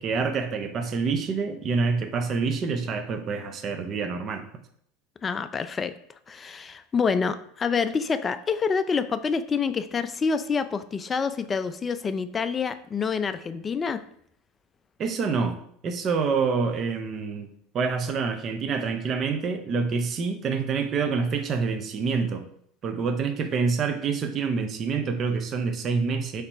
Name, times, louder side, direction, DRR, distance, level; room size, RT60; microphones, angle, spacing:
voice 1, 0.0-4.4 15.0-15.5 15.8-17.5 17.7-22.4 22.8-26.4, right 5 dB, 40° right, 7 dB, 0.5 m, -27 dB
voice 2, 5.2-5.9 6.3-14.0, left 5 dB, 25° left, 11 dB, 0.3 m, -27 dB
3.2 x 2.9 x 4.4 m, 0.67 s
hypercardioid pair, 80°, 0 cm